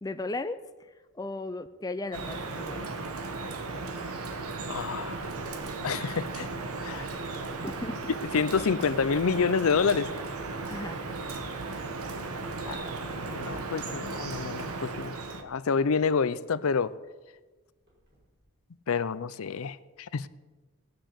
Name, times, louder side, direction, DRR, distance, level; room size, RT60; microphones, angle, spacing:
voice 1, 0.0-2.8 7.6-8.1 10.7-11.0, left 2 dB, 15° left, 10 dB, 0.4 m, -36 dB
Drip, 2.1-15.4, right 3 dB, 80° right, 1.3 m, -36 dB
voice 2, 4.7-5.2 5.8-6.5 6.8-7.1 8.3-10.1 12.7-12.8 13.2-15.1 15.4-16.9 18.9-20.3, left 5 dB, 70° left, 16 dB, 0.5 m, -28 dB
sound 1, 17.7-18.4, equal, 45° right, 5.4 m, -58 dB
17.0 x 6.4 x 8.2 m, 1.2 s
head